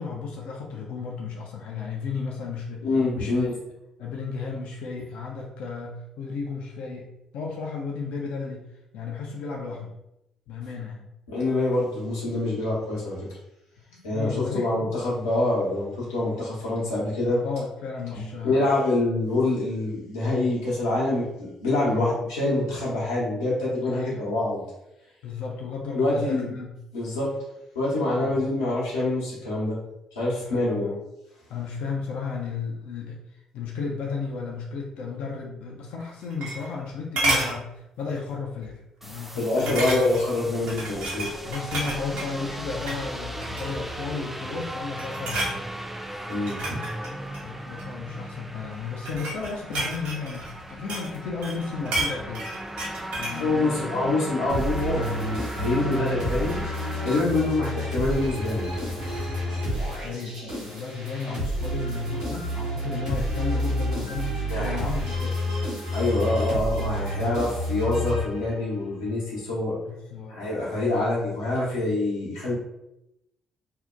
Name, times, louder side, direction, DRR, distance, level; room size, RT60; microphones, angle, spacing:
voice 1, 0.0-2.9 3.1-3.3 4.0-8.7 8.9-10.0 10.5-11.1 13.9-14.7 16.3-16.4 17.4-18.7 21.8-22.1 23.8-24.3 25.2-26.8 28.1-28.4 30.4-31.0 31.5-33.2 33.5-38.7 39.0-40.0 40.9-41.0 41.4-45.4 47.4-52.5 53.2-53.9 57.2-57.5 59.5-65.4 67.1-67.4 69.9-70.4 70.9-71.1, left 5 dB, 65° left, -1 dB, 0.4 m, -34 dB
voice 2, 2.8-3.5 11.3-13.3 14.0-17.4 18.1-24.6 25.9-26.5 26.9-27.3 27.7-29.8 30.1-30.9 39.4-41.5 46.3-46.8 53.4-58.7 64.5-64.8 65.9-69.8 70.3-72.5, left 2 dB, 85° left, -6 dB, 0.8 m, -26 dB
sound 1, 36.0-36.9 37.2-37.6 38.1-38.3 38.6-38.7 39.7-40.3 40.7-42.3 42.8-43.0 43.4-43.9 44.5-44.7 45.0-45.6 46.3-47.9 48.7-51.2 51.4-53.4 53.7-53.8, right 1 dB, 70° right, 0.7 m, -30 dB
sound 2, 39.0-57.2, right 1 dB, 10° right, 0.4 m, -37 dB
sound 3, 54.5-68.7, equal, 90° right, 1.0 m, -29 dB
2.6 x 2.1 x 2.4 m, 0.87 s
hypercardioid pair, 45°, 2 cm